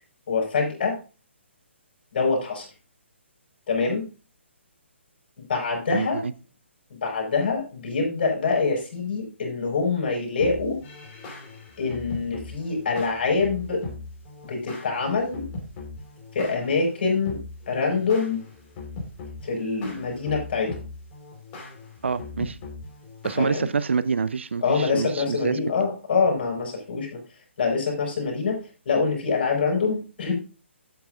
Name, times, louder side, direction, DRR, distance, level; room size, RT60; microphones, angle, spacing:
voice 1, 0.3-1.0 2.1-2.7 3.7-4.1 5.4-6.2 6.9-10.8 11.8-13.8 14.5-15.5 16.3-17.4 17.7-18.4 19.4-20.8 23.4-23.7 24.6-27.2 27.6-28.6 28.8-30.3, left 4 dB, 50° left, 0 dB, 6.2 m, -25 dB
voice 2, 5.9-6.3 22.0-22.6 23.2-25.6, right 5 dB, 65° right, 16 dB, 0.7 m, -26 dB
sound 1, 10.4-24.1, left 3 dB, 30° left, 4.6 m, -40 dB
12.0 x 8.9 x 2.6 m, 0.33 s
figure-of-eight pair, 135°, 7 cm